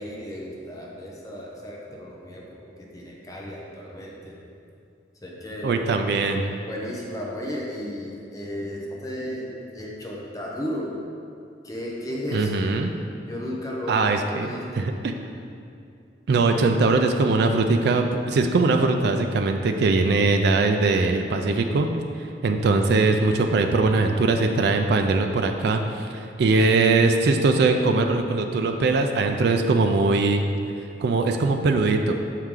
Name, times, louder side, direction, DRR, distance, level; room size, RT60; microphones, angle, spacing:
voice 1, 0.0-4.4 5.2-5.9 6.5-11.0 11.6-12.6 13.3-14.9, equal, 20° left, -3 dB, 0.7 m, -34 dB
voice 2, 5.6-6.5 12.3-12.9 13.9-15.1 16.3-21.9 22.2-30.4 31.0-32.1, right 3 dB, 65° right, 5 dB, 0.4 m, -21 dB
6.6 x 4.7 x 3.7 m, 2.5 s
head